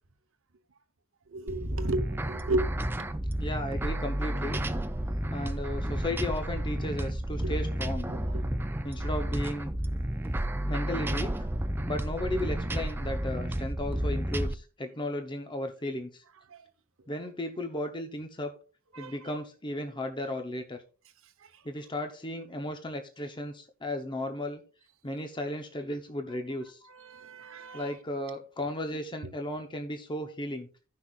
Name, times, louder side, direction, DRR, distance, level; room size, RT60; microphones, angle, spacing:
voice 1, 1.3-2.7 7.4-7.5 8.1-8.4 16.5-16.6 18.9-19.1 26.9-27.9, right 2 dB, 60° right, 9 dB, 1.0 m, -33 dB
sound 1, 1.5-14.5, right 1 dB, 10° right, 0.4 m, -31 dB
voice 2, 3.4-4.6 5.3-8.1 8.8-9.7 10.6-11.5 11.9-16.2 17.1-18.5 19.0-20.8 21.6-24.6 25.0-26.8 27.7-30.7, left 1 dB, 20° left, 5 dB, 0.8 m, -35 dB
16.0 x 6.0 x 2.4 m, 0.37 s
head